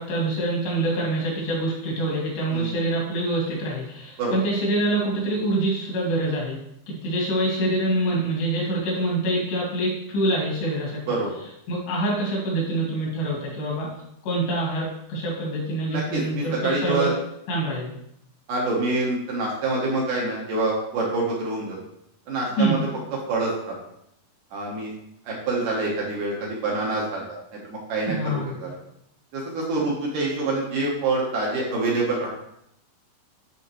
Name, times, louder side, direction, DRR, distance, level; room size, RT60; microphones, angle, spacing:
voice 1, 0.0-6.6 6.9-11.0 11.7-13.9 14.2-17.1 17.5-17.9 22.6-22.8 28.1-28.6, right 1 dB, 85° left, -4 dB, 4.1 m, -25 dB
voice 2, 15.9-17.1 18.5-21.8 22.3-22.8 23.3-23.8 24.5-24.9 25.2-27.4 27.6-28.8 29.3-32.3, right 2 dB, 65° right, -3 dB, 2.3 m, -26 dB
10.0 x 3.5 x 3.1 m, 0.77 s
omnidirectional pair, 4.6 m